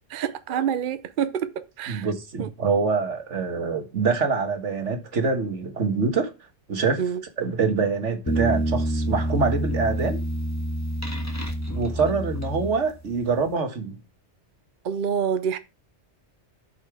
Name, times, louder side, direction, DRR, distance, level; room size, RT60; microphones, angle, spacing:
voice 1, 0.1-2.1 2.4-2.5 7.0-7.2 14.8-15.6, right 8 dB, 55° right, 0.8 m, -27 dB
voice 2, 1.9-6.3 6.7-7.0 7.4-10.2 11.7-14.0, right 4 dB, 90° right, 1.7 m, -25 dB
sound 1, 8.3-13.2, equal, 15° left, 1.4 m, -27 dB
8.2 x 5.5 x 4.8 m
omnidirectional pair, 1.2 m